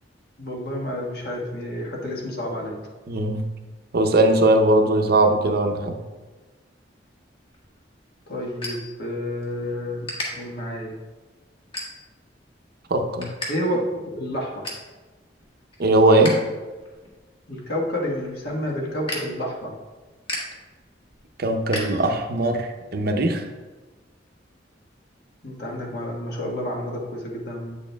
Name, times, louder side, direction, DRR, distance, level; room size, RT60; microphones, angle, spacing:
voice 1, 0.4-2.8 8.3-10.1 10.3-10.9 13.5-14.5 17.5-19.7 25.4-27.8, equal, 60° left, -2 dB, 1.4 m, -29 dB
voice 2, 3.1-3.5 3.9-6.0 12.9-13.3 15.8-16.4 21.4-23.4, right 1 dB, 55° right, 5 dB, 0.6 m, -19 dB
sound 1, 7.5-9.5 9.8-10.3 10.8-11.1 11.6-12.3 12.7-13.5 13.8-13.9 14.3-14.9 15.4-16.3 16.7-22.5, left 1 dB, 30° left, 1.5 m, -35 dB
8.3 x 7.2 x 2.3 m, 1.3 s
head